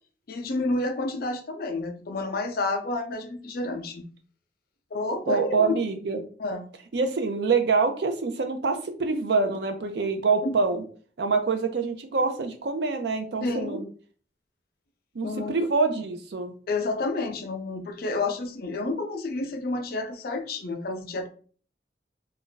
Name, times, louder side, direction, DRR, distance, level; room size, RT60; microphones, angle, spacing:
voice 1, 0.3-4.1 4.9-5.8 6.4-6.7 10.4-10.6 13.4-13.9 15.2-15.7 16.7-21.3, left 2 dB, 55° left, 6 dB, 0.5 m, -30 dB
voice 2, 5.3-6.2 6.9-10.8 11.2-13.8 15.1-16.5, right 4 dB, 65° right, 6 dB, 0.5 m, -25 dB
2.5 x 2.2 x 3.8 m, 0.43 s
head